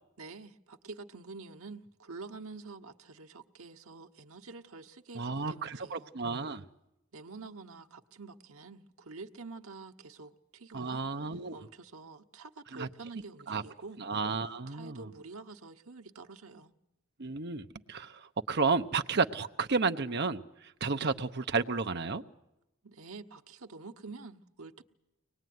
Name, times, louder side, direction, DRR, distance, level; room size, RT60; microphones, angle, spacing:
voice 1, 0.2-6.1 7.1-11.0 11.5-14.0 14.7-16.7 22.8-24.8, right 3 dB, 85° right, 1.2 m, -47 dB
voice 2, 5.1-6.6 10.7-11.5 12.7-12.9 13.5-13.6 14.0-15.1 17.2-18.2 18.5-20.4 20.8-22.2, right 4 dB, 50° right, 0.9 m, -32 dB
24.0 x 20.0 x 9.5 m
head